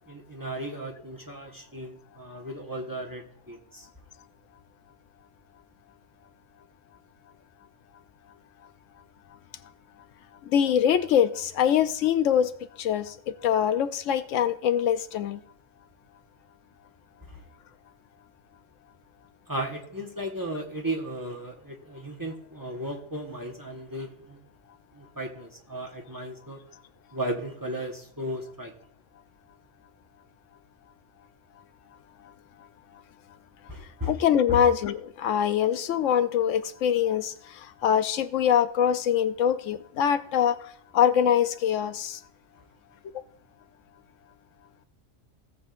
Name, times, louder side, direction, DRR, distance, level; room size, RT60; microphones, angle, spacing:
voice 1, 0.1-3.9 17.3-17.4 19.5-24.4 24.9-26.7 27.1-28.7 33.7-34.1 34.5-34.6, right 1 dB, 15° right, 1.1 m, -35 dB
voice 2, 10.4-15.4 34.0-42.2, left 9 dB, 75° left, 0.9 m, -24 dB
17.5 x 7.4 x 2.5 m
omnidirectional pair, 1.3 m